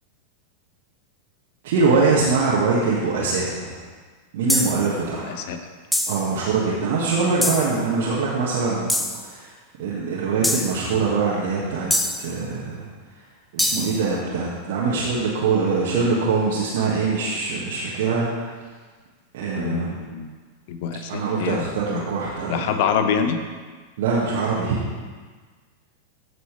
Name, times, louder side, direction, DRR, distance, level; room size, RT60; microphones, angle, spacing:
voice 1, 1.6-3.7 4.3-5.3 6.1-8.9 9.2-9.5 9.8-11.9 12.2-12.9 13.5-18.4 19.3-20.0 21.1-22.8 24.0-24.8, right 4 dB, 55° right, -6 dB, 1.8 m, -23 dB
sound 1, 4.5-4.9 5.9-6.3 7.4-7.8 8.9-9.2 10.4-10.8 11.9-12.3 13.6-14.0, left 1 dB, 5° left, 0.6 m, -23 dB
voice 2, 5.3-5.6 10.4-10.5 19.5-20.3 20.7-22.0 22.5-23.4, left 7 dB, 50° left, 8 dB, 0.9 m, -26 dB
14.5 x 6.6 x 3.4 m, 1.5 s
figure-of-eight pair, 90°, 0 cm